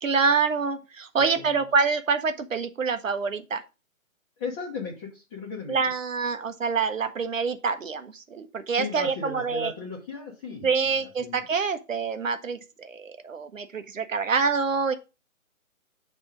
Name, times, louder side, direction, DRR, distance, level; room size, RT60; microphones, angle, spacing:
voice 1, 0.0-3.6 5.7-9.7 10.6-14.9, right 5 dB, 70° right, 0.9 m, -26 dB
voice 2, 4.4-5.8 8.7-11.5, left 4 dB, 15° left, 0.9 m, -36 dB
6.3 x 3.3 x 5.1 m
figure-of-eight pair, 140°, 41 cm